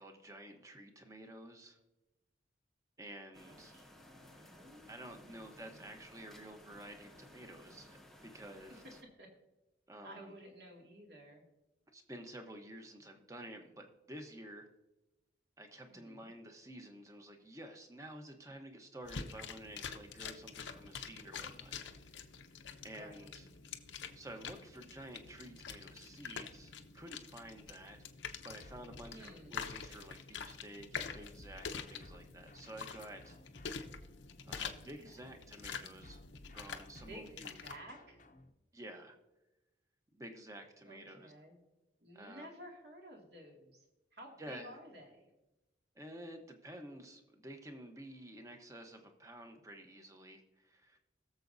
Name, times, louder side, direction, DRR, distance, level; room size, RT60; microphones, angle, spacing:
voice 1, 0.0-1.8 3.0-3.7 4.9-8.8 9.9-10.3 11.9-14.7 15.6-21.7 22.2-22.3 22.8-23.5 24.1-28.0 28.4-33.4 34.4-36.2 36.5-37.6 38.7-39.2 40.1-41.3 42.1-42.5 44.4-44.8 45.9-51.0, right 1 dB, 15° right, 4 dB, 1.0 m, -51 dB
sound 1, 3.3-9.0, left 1 dB, ahead, 0.6 m, -58 dB
voice 2, 3.4-4.9 5.2-5.9 8.7-8.8 9.2-9.3 10.0-11.4 15.9-16.3 22.9-23.8 29.1-29.7 34.4-35.3 37.1-38.2 40.8-41.6 42.0-43.9 44.1-45.3, equal, 60° right, 0 dB, 2.3 m, -54 dB
sound 2, 19.0-37.8, left 6 dB, 85° left, 0.8 m, -47 dB
sound 3, 28.6-30.3 31.1-35.3 36.0-38.5, left 1 dB, 40° left, 0.7 m, -57 dB
21.0 x 7.1 x 2.7 m, 1.0 s
head